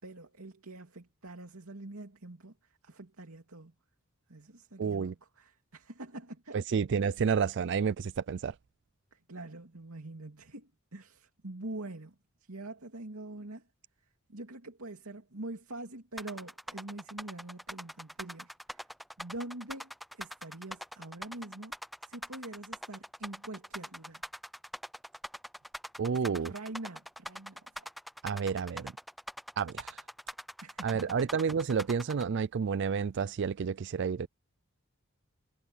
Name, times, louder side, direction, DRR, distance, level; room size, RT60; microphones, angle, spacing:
voice 1, 0.0-3.7 4.3-6.6 9.1-13.7 14.3-18.9 19.2-21.7 22.0-24.2 26.2-27.9 30.6-31.0, right 2 dB, 85° right, 2.6 m, -45 dB
voice 2, 4.8-5.1 6.5-8.6 26.0-26.5 28.2-28.9 29.6-30.0 30.8-34.3, right 6 dB, 55° right, 0.4 m, -30 dB
sound 1, 16.2-32.2, equal, ahead, 0.6 m, -43 dB
head